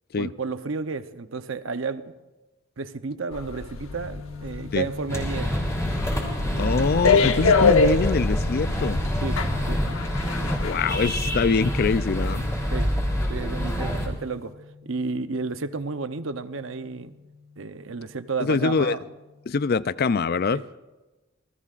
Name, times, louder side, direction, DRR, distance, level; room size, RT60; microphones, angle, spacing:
voice 1, 0.2-2.1 2.8-5.5 9.2-9.4 9.7-9.8 10.4-10.6 12.7-12.9 13.3-14.5 14.8-17.1 17.6-19.0 20.5-20.6, right 4 dB, 70° right, 0.8 m, -32 dB
sound 1, 3.3-12.4 12.7-12.9, left 4 dB, 80° left, 1.0 m, -26 dB
sound 2, 3.9-19.5, left 4 dB, 30° right, 2.3 m, -45 dB
sound 3, 5.1-14.1, equal, 15° left, 3.3 m, -27 dB
voice 2, 6.6-9.0 10.6-12.4 18.4-19.0 19.5-20.6, left 5 dB, 50° left, 0.4 m, -24 dB
27.5 x 19.0 x 2.5 m
head